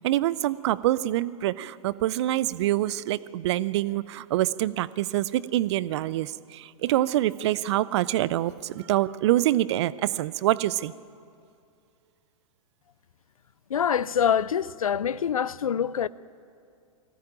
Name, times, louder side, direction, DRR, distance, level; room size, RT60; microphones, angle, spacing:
voice 1, 0.0-10.9, right 14 dB, 50° right, 0.6 m, -25 dB
voice 2, 13.7-16.1, left 8 dB, 80° left, 0.5 m, -25 dB
20.0 x 16.5 x 8.9 m
figure-of-eight pair, 105°, 18 cm